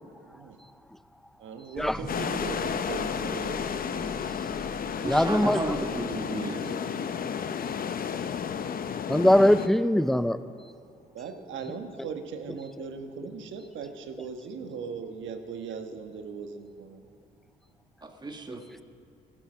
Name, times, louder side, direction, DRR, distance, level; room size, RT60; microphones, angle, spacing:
voice 1, 0.2-0.6 1.4-4.0 11.1-17.0, right 5 dB, 75° right, 6 dB, 1.2 m, -39 dB
voice 2, 1.7-2.3 5.0-5.8 9.1-10.4 12.0-12.1 12.5-12.8, left 1 dB, ahead, 13 dB, 0.4 m, -23 dB
sound 1, 1.8-6.2, left 2 dB, 30° left, 4.4 m, -44 dB
sound 2, 2.1-9.7, left 7 dB, 45° left, 0.7 m, -32 dB
voice 3, 5.0-6.8 18.0-18.6, right 2 dB, 20° right, 4 dB, 1.4 m, -34 dB
15.0 x 11.5 x 6.1 m, 2.4 s
cardioid pair, 90°, 20 cm